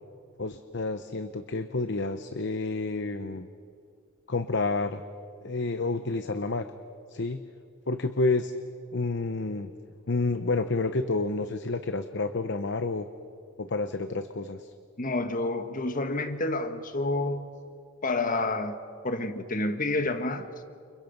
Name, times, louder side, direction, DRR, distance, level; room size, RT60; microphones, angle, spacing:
voice 1, 0.4-3.5 4.3-5.0 5.4-6.7 7.1-7.4 7.9-8.5 8.9-9.7 10.1-13.1 13.6-14.7, left 3 dB, 55° left, 9 dB, 0.9 m, -29 dB
voice 2, 15.0-17.5 18.0-20.5, left 2 dB, 40° left, 8 dB, 1.5 m, -29 dB
30.0 x 29.0 x 5.4 m, 2.3 s
head